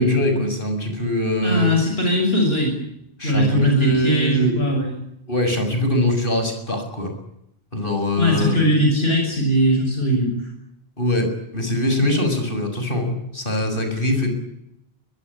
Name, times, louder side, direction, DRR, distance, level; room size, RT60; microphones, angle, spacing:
voice 1, 0.0-1.7 3.2-4.6 5.3-7.1 7.7-8.6 11.0-14.3, left 1 dB, 60° left, 6 dB, 7.4 m, -22 dB
voice 2, 1.4-2.8 3.2-4.9 8.2-10.5, equal, 75° left, 2 dB, 7.0 m, -19 dB
23.5 x 21.5 x 9.9 m, 0.79 s
omnidirectional pair, 1.0 m